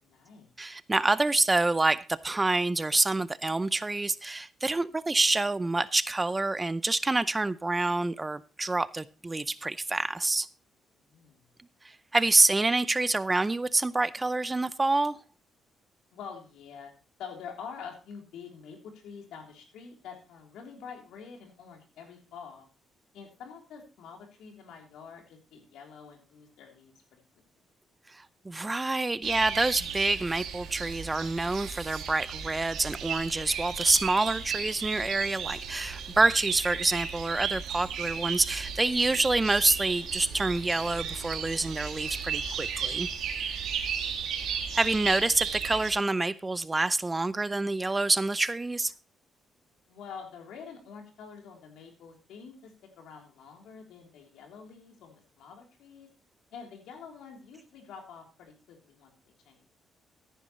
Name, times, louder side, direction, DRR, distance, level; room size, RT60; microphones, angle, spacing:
voice 1, 0.0-0.5 10.9-11.4 16.1-16.9 17.2-22.7 23.1-27.2 43.7-44.0 49.9-56.1 56.5-59.6, left 6 dB, 85° left, 3.4 m, -47 dB
voice 2, 0.6-10.5 11.8-15.2 28.1-43.1 44.7-48.9, right 2 dB, 20° right, 0.5 m, -27 dB
sound 1, 29.2-45.9, right 7 dB, 75° right, 2.3 m, -35 dB
14.0 x 10.5 x 3.1 m
cardioid pair, 90°, 0 cm